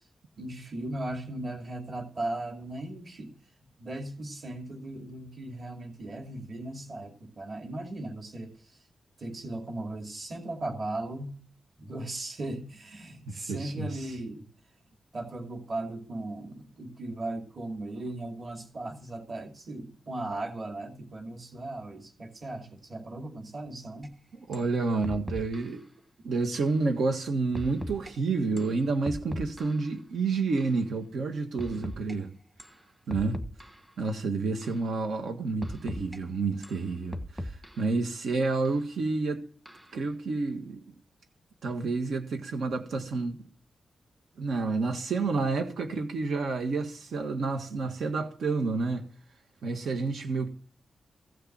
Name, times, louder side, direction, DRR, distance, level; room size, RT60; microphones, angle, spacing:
voice 1, 0.4-3.4 3.8-8.8 9.2-11.4 11.8-14.5 15.1-24.2 25.1-25.2, right 2 dB, 40° right, 2.6 m, -37 dB
voice 2, 13.3-14.2 24.3-25.9 26.2-32.3 33.1-33.4 34.0-39.4 39.9-40.9 41.6-43.4 44.4-49.1 49.6-50.5, right 3 dB, 80° right, 1.7 m, -29 dB
sound 1, 24.0-24.1 24.5-24.7 25.0-25.8 26.5-26.8 27.5-28.1 28.6-29.9 30.6-30.8 31.6-32.1 32.6-32.8 33.1-33.9 34.6-34.9 35.6-36.2 36.6-37.9 38.6-38.8 39.7-40.0, equal, 10° right, 1.3 m, -39 dB
15.5 x 6.7 x 8.7 m
wide cardioid pair, 175°, 0 cm